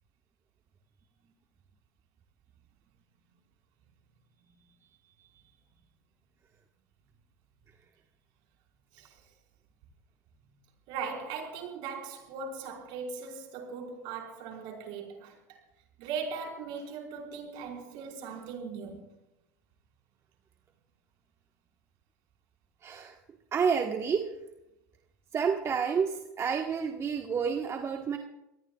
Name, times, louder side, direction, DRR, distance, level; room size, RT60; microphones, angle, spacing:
voice 1, 10.9-15.4 16.0-19.1, right 5 dB, 60° right, 1 dB, 4.9 m, -39 dB
voice 2, 22.8-23.1 23.5-24.2 25.3-28.2, right 6 dB, 30° right, 3 dB, 1.5 m, -29 dB
25.5 x 19.0 x 2.4 m, 0.92 s
hypercardioid pair, 85°, 9 cm